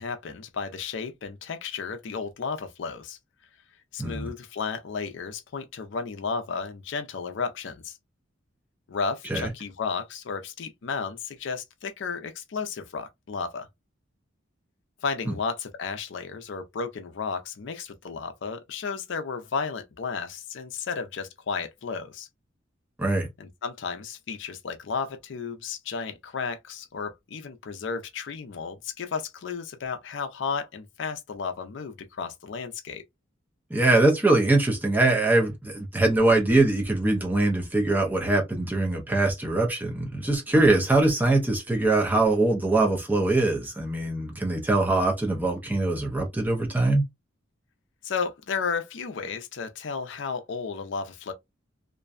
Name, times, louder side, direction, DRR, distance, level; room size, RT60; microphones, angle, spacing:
voice 1, 0.0-3.2 3.9-7.9 8.9-13.7 15.0-22.3 23.4-33.0 48.0-51.3, left 5 dB, 65° left, 0.4 m, -33 dB
voice 2, 4.0-4.3 9.3-9.5 23.0-23.3 33.7-47.0, right 2 dB, 10° right, 0.4 m, -22 dB
2.5 x 2.1 x 2.3 m
head